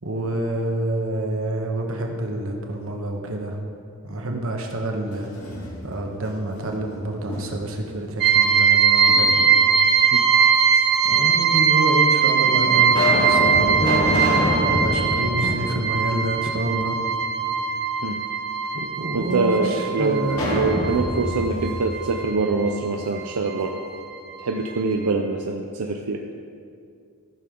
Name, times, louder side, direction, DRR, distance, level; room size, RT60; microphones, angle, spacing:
voice 1, 0.0-3.6 4.0-5.5 5.8-9.5 11.0-17.0 18.7-20.4, right 1 dB, 65° right, 2 dB, 1.2 m, -28 dB
sound 1, 5.1-6.1 6.5-7.8 9.1-9.9 10.7-10.8 11.7-11.8 12.4-16.5 16.8-16.9 20.3-23.1, left 1 dB, 75° left, 1.9 m, -27 dB
sound 2, 8.2-22.5 22.8-23.8 24.2-24.3 24.7-24.8, right 6 dB, 45° right, 0.7 m, -21 dB
sound 3, 13.8-17.9, left 1 dB, 10° right, 0.5 m, -33 dB
voice 2, 19.1-23.8 24.4-26.2, right 3 dB, 85° right, 2 dB, 0.6 m, -24 dB
14.0 x 6.8 x 3.8 m, 2.4 s
head